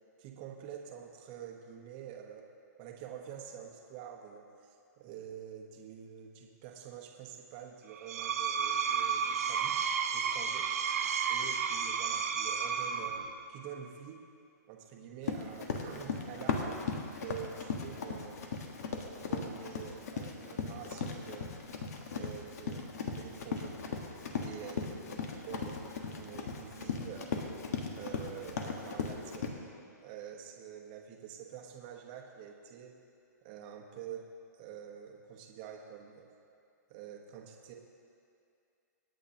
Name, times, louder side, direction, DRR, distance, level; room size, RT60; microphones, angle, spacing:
voice 1, 0.2-2.5 2.8-9.8 10.1-10.7 11.3-13.2 13.5-14.3 14.7-16.9 17.2-18.4 19.2-21.5 22.1-23.8 24.4-25.8 26.1-27.3 27.9-29.5 30.0-33.0 33.4-34.3 34.5-36.2 36.9-37.7, right 9 dB, 30° right, 2 dB, 1.2 m, -47 dB
Screech, 7.9-13.4, right 7 dB, 60° right, 1.0 m, -32 dB
Run, 15.2-29.5, left 5 dB, 60° left, 1.5 m, -37 dB
26.0 x 9.1 x 2.9 m, 2.5 s
hypercardioid pair, 165°, 10 cm